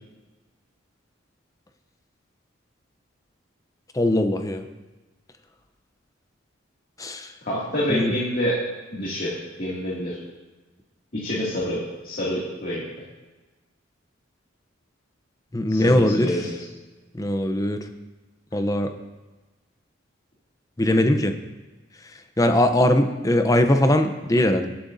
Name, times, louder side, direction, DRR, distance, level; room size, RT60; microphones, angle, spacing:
voice 1, 3.9-4.7 7.0-7.3 7.9-8.1 15.5-16.3 17.1-17.8 18.5-18.9 20.8-21.3 22.4-24.7, left 1 dB, 15° left, 7 dB, 0.7 m, -20 dB
voice 2, 7.5-8.6 8.9-10.2 11.1-12.8 15.7-16.6, equal, 45° left, -7 dB, 2.4 m, -27 dB
19.0 x 8.9 x 2.7 m, 1.2 s
head